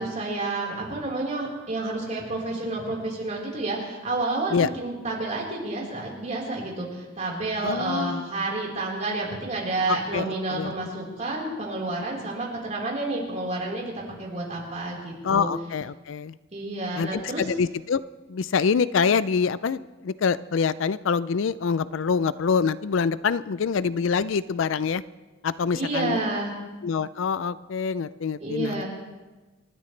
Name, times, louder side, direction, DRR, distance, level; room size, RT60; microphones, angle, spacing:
voice 1, 0.0-13.9 14.2-15.5 16.5-17.4 25.7-26.5 28.4-28.8, right 2 dB, 35° right, -3 dB, 4.2 m, -30 dB
voice 2, 7.6-8.3 9.9-10.7 15.2-16.4 17.0-18.0 18.3-25.0 25.4-26.2 26.8-28.8, left 6 dB, 70° left, 17 dB, 0.4 m, -25 dB
28.5 x 13.0 x 3.3 m, 1.2 s
head